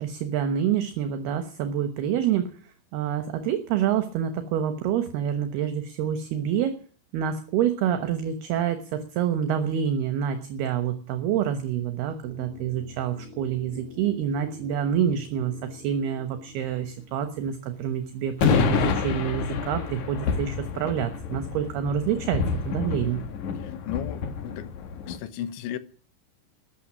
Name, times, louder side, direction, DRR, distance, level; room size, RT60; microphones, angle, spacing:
voice 1, 0.0-2.5 2.9-6.8 7.1-23.2, right 9 dB, 70° right, 2.9 m, -27 dB
sound 1, 12.2-18.2 18.5-18.6, left 4 dB, 15° left, 3.6 m, -47 dB
sound 2, 18.4-25.2, left 7 dB, 55° left, 2.3 m, -28 dB
voice 2, 23.6-24.7 25.1-25.8, left 10 dB, 85° left, 3.5 m, -35 dB
13.5 x 9.5 x 9.7 m
omnidirectional pair, 5.1 m